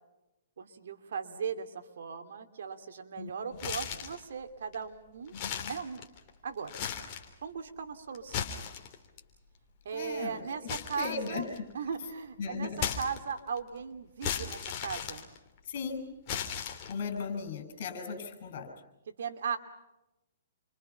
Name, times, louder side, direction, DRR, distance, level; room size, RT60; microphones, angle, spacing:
voice 1, 0.6-5.4 5.7-6.0 6.4-6.7 7.4-8.5 9.8-11.5 11.7-15.3 19.1-19.6, right 6 dB, 70° right, 6 dB, 2.8 m, -38 dB
sound 1, 3.5-4.2 4.7-4.8 5.3-6.3 6.6-7.3 8.1-9.2 10.7-11.7 12.8-13.6 14.2-15.8 16.3-17.2, left 8 dB, 35° left, 3.2 m, -36 dB
voice 2, 5.4-5.7 9.9-10.7 10.9-11.5 12.4-12.8 15.7-16.1 16.9-18.7, left 5 dB, 50° left, 8 dB, 6.6 m, -37 dB
29.0 x 25.0 x 5.8 m, 0.93 s
hypercardioid pair, 155°, 0 cm